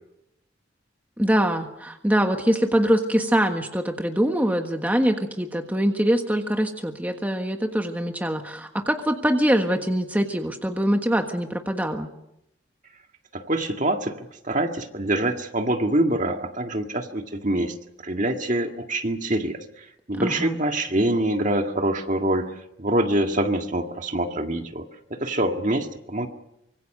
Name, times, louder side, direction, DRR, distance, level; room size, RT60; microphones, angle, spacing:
voice 1, 1.2-12.1 20.1-20.6, equal, 10° right, 4 dB, 1.5 m, -23 dB
voice 2, 13.3-17.7 18.0-22.5 22.8-24.8 25.1-26.3, right 1 dB, 40° right, 4 dB, 1.9 m, -25 dB
25.0 x 23.0 x 6.7 m, 0.83 s
head